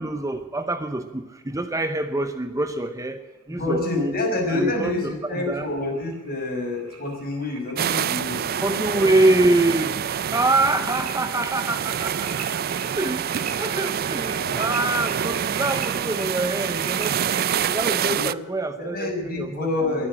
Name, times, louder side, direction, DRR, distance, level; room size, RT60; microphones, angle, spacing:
voice 1, 0.0-4.2 4.5-5.7 8.6-12.6 13.0-19.9, right 2 dB, 15° right, 9 dB, 0.7 m, -25 dB
voice 2, 3.5-8.4 8.7-8.8 14.3-14.6 18.0-18.3 18.8-20.1, left 2 dB, 45° left, 0 dB, 5.7 m, -27 dB
sound 1, 3.8-17.5, right 6 dB, 80° right, 2.8 m, -41 dB
sound 2, 7.8-18.3, right 8 dB, 45° right, 0.4 m, -26 dB
22.0 x 8.6 x 7.5 m, 1.3 s
head